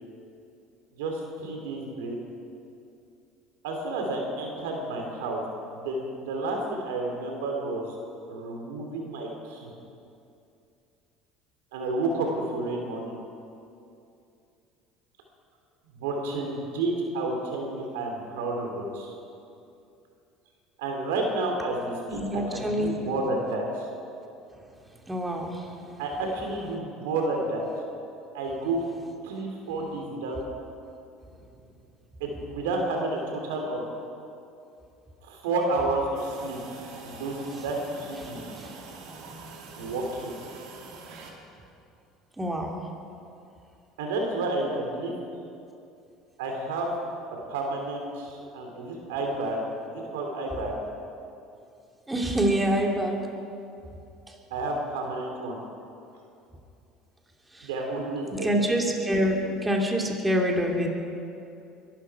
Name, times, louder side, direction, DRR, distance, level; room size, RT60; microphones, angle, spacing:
voice 1, 0.9-2.2 3.6-5.4 5.8-7.9 8.3-9.7 11.7-13.1 15.9-19.1 20.8-23.9 26.0-27.6 28.3-28.8 29.2-30.4 32.2-33.8 35.2-36.6 37.0-38.5 39.8-40.3 44.0-45.2 46.4-46.9 47.5-50.8 54.5-55.6 57.6-58.5, right 2 dB, 85° right, 1 dB, 3.0 m, -30 dB
voice 2, 22.1-23.2 25.1-26.1 38.2-38.8 42.4-42.7 52.1-53.2 54.3-54.4 57.5-57.7 58.3-60.9, equal, 10° right, 0 dB, 2.6 m, -27 dB
sound 1, 36.1-41.3, right 4 dB, 70° right, 2.6 m, -44 dB
22.5 x 12.5 x 4.8 m, 2.6 s
supercardioid pair, 90°, 0 cm